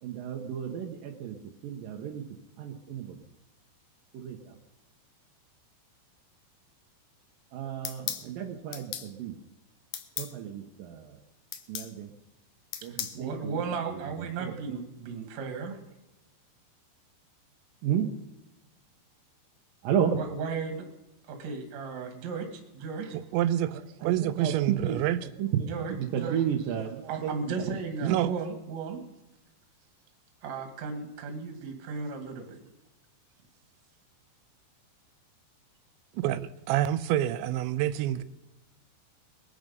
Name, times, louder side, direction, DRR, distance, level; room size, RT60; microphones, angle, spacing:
voice 1, 0.0-2.3 2.6-3.2 4.1-4.6 7.5-9.4 10.2-11.2 11.7-12.1 12.8-13.6 13.9-14.8 17.8-18.1 19.8-20.2 23.7-25.0 25.4-27.7 28.0-28.1, right 9 dB, 70° right, 1 dB, 2.2 m, -33 dB
sound 1, 7.8-8.3 8.7-9.1 9.9-10.3 11.5-11.9 12.7-13.2, left 11 dB, 70° left, 2.5 m, -35 dB
voice 2, 12.8-15.8 19.9-20.9 21.3-23.2 25.7-26.4 27.1-29.0 30.4-32.6, right 5 dB, 50° right, 5 dB, 2.7 m, -35 dB
voice 3, 23.1-25.2 28.1-28.3 36.1-38.2, right 12 dB, 85° right, 13 dB, 3.0 m, -27 dB
21.0 x 10.5 x 5.3 m, 0.99 s
omnidirectional pair, 5.2 m